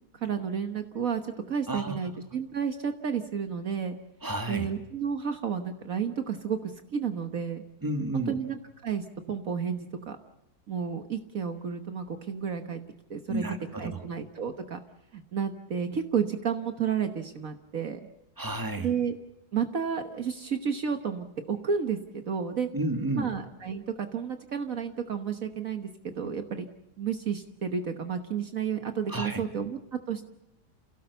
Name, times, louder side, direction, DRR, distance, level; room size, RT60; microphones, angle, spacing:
voice 1, 0.2-4.0 4.5-7.6 8.1-10.2 10.7-12.8 13.1-14.8 15.1-18.1 18.8-19.1 19.5-22.7 23.1-26.7 27.0-29.8 30.1-30.2, right 7 dB, 60° right, 7 dB, 1.6 m, -31 dB
voice 2, 1.7-2.0 4.2-4.7 7.8-8.4 13.3-14.0 18.4-18.9 22.7-23.3 29.1-29.4, right 1 dB, 15° right, 5 dB, 2.1 m, -31 dB
28.5 x 17.5 x 6.9 m, 0.91 s
omnidirectional pair, 1.7 m